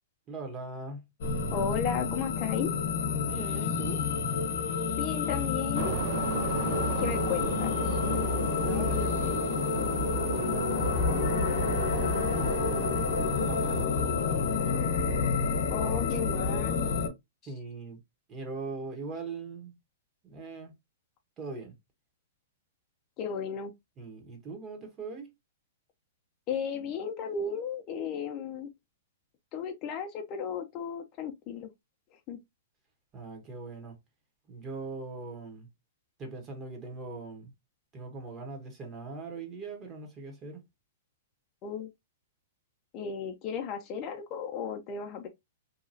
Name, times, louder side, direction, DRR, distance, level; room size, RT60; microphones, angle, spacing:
voice 1, 0.3-1.1 3.2-4.1 8.6-9.6 10.3-11.5 12.3-15.1 17.4-18.0 18.3-19.7 20.2-20.7 21.4-21.7 24.0-25.3 33.1-34.0 34.5-35.7 36.2-37.5 37.9-40.6, right 3 dB, 25° right, 1.0 m, -41 dB
sound 1, 1.2-17.1, left 5 dB, 60° left, 0.9 m, -29 dB
voice 2, 1.5-2.7 5.0-6.0 7.0-8.0 15.7-16.9 23.2-23.7 26.5-28.7 29.5-31.7 32.3-32.4 41.6-41.9 42.9-45.3, left 7 dB, 35° left, 0.5 m, -34 dB
sound 2, 5.7-13.8, right 10 dB, 55° right, 0.3 m, -36 dB
2.8 x 2.3 x 2.6 m
hypercardioid pair, 130°, 0 cm